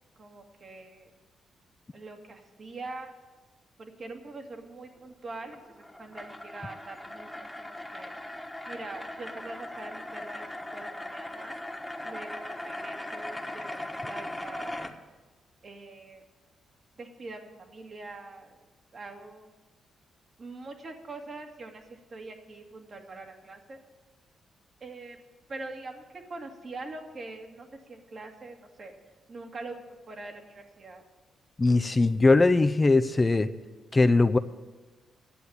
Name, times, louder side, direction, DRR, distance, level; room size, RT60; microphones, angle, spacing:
voice 1, 0.2-1.1 1.9-3.1 3.8-7.3 7.6-8.1 8.7-11.6 12.0-14.8 15.6-16.2 17.0-18.7 18.9-19.5 20.4-23.8 24.8-25.2 25.5-28.9 29.3-31.0, right 3 dB, 50° right, 2 dB, 2.0 m, -43 dB
sound 1, 5.4-14.9, left 1 dB, 5° left, 1.3 m, -39 dB
voice 2, 31.6-33.5 33.9-34.4, left 3 dB, 30° left, 11 dB, 0.5 m, -21 dB
10.0 x 8.0 x 8.6 m, 1.3 s
supercardioid pair, 55°, 0 cm